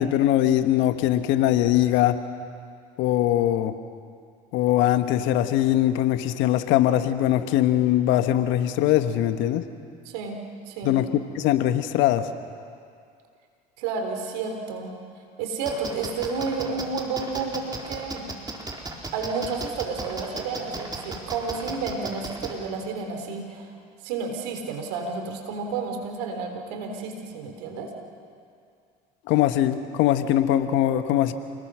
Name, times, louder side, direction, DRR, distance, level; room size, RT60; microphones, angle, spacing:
voice 1, 0.0-2.2 3.0-3.8 4.5-9.7 10.8-11.1 11.3-12.3 29.3-31.3, left 12 dB, 65° left, 9 dB, 1.4 m, -21 dB
voice 2, 10.1-10.4 10.7-10.9 13.8-14.9 15.4-18.3 19.1-23.7 24.0-27.9, right 4 dB, 75° right, 4 dB, 3.8 m, -31 dB
sound 1, 15.7-22.5, right 2 dB, 20° right, 4.3 m, -35 dB
29.5 x 19.5 x 6.4 m, 2.3 s
hypercardioid pair, 70°, 21 cm